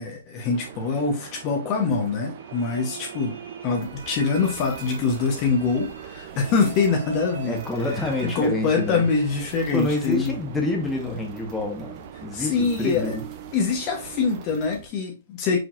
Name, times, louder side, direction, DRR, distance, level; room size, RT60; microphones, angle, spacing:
voice 1, 0.0-3.4 3.6-7.6 8.2-10.4 12.3-13.2 13.5-15.6, left 4 dB, 35° left, 1.0 m, -24 dB
sound 1, 0.5-14.5, right 10 dB, 50° right, 0.5 m, -43 dB
sound 2, 2.4-10.1, right 7 dB, 75° right, 1.3 m, -43 dB
sound 3, 3.8-14.9, right 3 dB, 30° right, 1.2 m, -47 dB
voice 2, 7.5-9.0 9.7-13.2, left 2 dB, 10° left, 1.2 m, -27 dB
4.8 x 3.9 x 2.5 m
hypercardioid pair, 135°, 0 cm